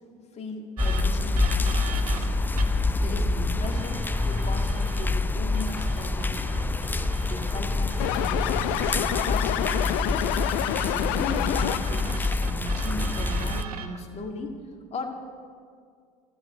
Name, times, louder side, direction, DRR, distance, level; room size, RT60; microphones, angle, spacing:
voice 1, 0.3-2.5 3.0-6.7 7.3-8.9 9.2-10.3 10.8-14.6 14.9-15.1, left 3 dB, 35° left, 2 dB, 2.1 m, -37 dB
sound 1, 0.8-13.6, left 2 dB, 10° left, 0.5 m, -26 dB
sound 2, 0.8-2.9 3.6-5.1 5.5-9.3 9.6-13.9, right 7 dB, 85° right, 1.0 m, -40 dB
sound 3, 8.0-12.1, left 13 dB, 60° left, 0.5 m, -28 dB
13.5 x 8.1 x 8.1 m, 2.1 s
hypercardioid pair, 70°, 19 cm